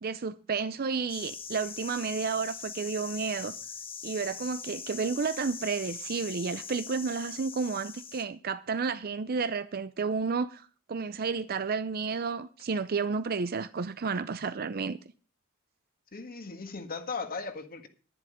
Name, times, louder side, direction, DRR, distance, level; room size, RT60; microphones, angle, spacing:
voice 1, 0.0-3.5 4.0-15.0, right 5 dB, 45° right, 0.5 m, -31 dB
sound 1, 1.1-8.2, left 6 dB, 25° left, 1.2 m, -42 dB
voice 2, 16.1-17.9, left 4 dB, 45° left, 1.7 m, -37 dB
11.0 x 11.0 x 5.1 m
head